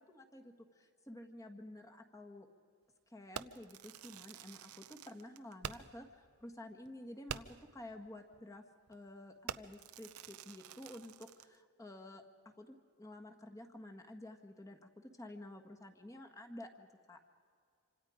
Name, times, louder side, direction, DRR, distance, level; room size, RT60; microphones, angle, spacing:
voice 1, 0.0-2.5 3.1-8.6 8.9-17.2, left 1 dB, 15° left, 3 dB, 1.7 m, -51 dB
Fireworks, 3.3-6.1 6.4-6.5 6.9-7.0 7.3-7.7 8.3-8.5 8.9-9.1 9.5-11.6, right 8 dB, 85° right, 0.6 m, -47 dB
26.5 x 26.0 x 5.1 m, 2.2 s
head